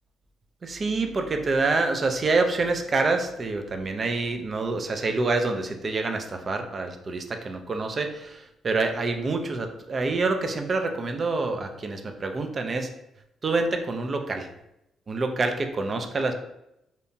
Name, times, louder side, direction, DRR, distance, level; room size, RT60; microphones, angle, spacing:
voice 1, 0.6-12.9 13.4-14.5 15.1-16.3, right 3 dB, 40° right, 5 dB, 0.3 m, -27 dB
2.8 x 2.1 x 2.6 m, 0.84 s
cardioid pair, 90°, 0 cm